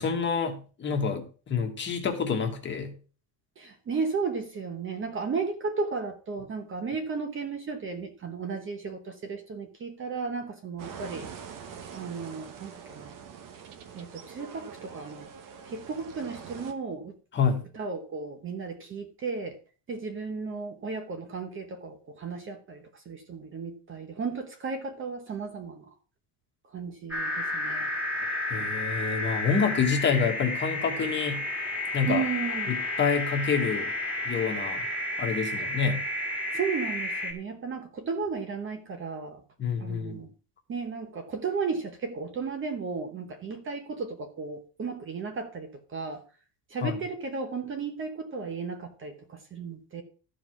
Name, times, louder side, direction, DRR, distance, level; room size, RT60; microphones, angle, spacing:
voice 1, 0.0-2.9 17.3-17.7 28.2-31.4 31.9-32.2 32.7-33.9 34.2-34.8 35.2-36.0 39.6-40.2 46.8-47.0, left 6 dB, 25° left, 3 dB, 1.5 m, -28 dB
voice 2, 3.6-11.3 11.9-13.1 13.9-15.3 15.6-17.2 17.7-19.6 19.9-25.9 26.7-27.9 32.1-32.7 36.5-39.4 39.8-40.3 40.7-46.2 46.7-50.0, right 5 dB, 25° right, 7 dB, 1.1 m, -34 dB
sound 1, 10.8-16.7, right 7 dB, 45° right, 1.2 m, -44 dB
sound 2, 27.1-37.3, left 2 dB, 5° right, 2.1 m, -31 dB
13.0 x 4.9 x 6.0 m, 0.37 s
cardioid pair, 180°, 44 cm